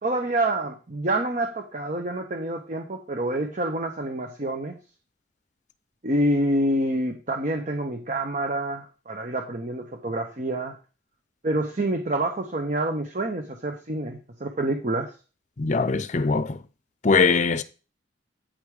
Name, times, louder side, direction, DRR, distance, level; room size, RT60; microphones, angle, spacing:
voice 1, 0.0-4.8 6.0-10.7 11.4-15.1, right 1 dB, 45° right, 0.9 m, -27 dB
voice 2, 15.6-16.6 17.0-17.6, left 4 dB, 40° left, 0.6 m, -21 dB
8.9 x 5.3 x 4.8 m
head